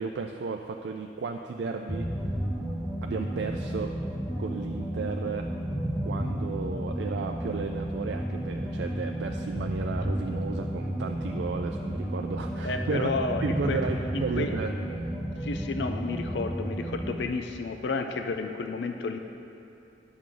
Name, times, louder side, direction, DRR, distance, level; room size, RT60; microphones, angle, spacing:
voice 1, 0.0-2.1 3.0-3.9 4.4-5.5 6.0-13.1 13.4-14.7, right 4 dB, 70° right, 3 dB, 0.4 m, -33 dB
sound 1, 1.9-17.2, equal, ahead, 0.7 m, -32 dB
voice 2, 12.6-13.8 14.1-14.5 15.4-19.2, left 4 dB, 70° left, 6 dB, 0.4 m, -31 dB
10.5 x 6.3 x 3.8 m, 2.8 s
head